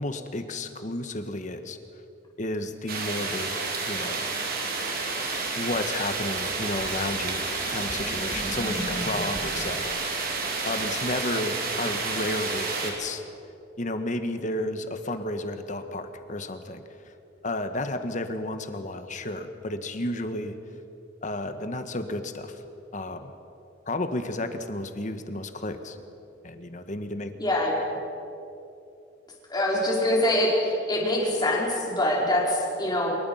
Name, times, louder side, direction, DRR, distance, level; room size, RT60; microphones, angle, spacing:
voice 1, 0.0-1.8 2.4-3.6 3.8-4.3 5.5-10.3 10.6-13.2 13.8-16.8 17.4-20.5 21.2-22.6 22.9-23.3 23.9-26.0 26.4-27.3, left 1 dB, 40° left, 8 dB, 1.5 m, -32 dB
sound 1, 2.9-12.9, right 3 dB, 55° right, 3.7 m, -30 dB
sound 2, 6.8-9.7 12.6-12.7, equal, 30° right, 4.4 m, -38 dB
voice 2, 27.4-27.7 29.5-33.2, left 1 dB, 20° left, -3 dB, 5.2 m, -24 dB
27.0 x 23.0 x 5.8 m, 2.8 s
head